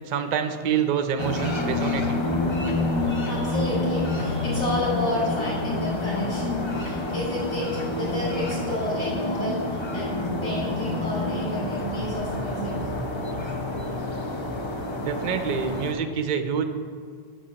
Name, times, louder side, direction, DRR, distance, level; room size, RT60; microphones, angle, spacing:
voice 1, 0.1-2.2 15.0-16.7, right 7 dB, 50° right, 8 dB, 0.6 m, -26 dB
Suburb Soundscape, 1.2-15.9, left 2 dB, 30° left, 0.6 m, -28 dB
voice 2, 3.0-9.6 9.9-12.7, left 1 dB, 65° left, -10 dB, 2.5 m, -31 dB
5.7 x 5.5 x 6.9 m, 2.1 s
omnidirectional pair, 1.1 m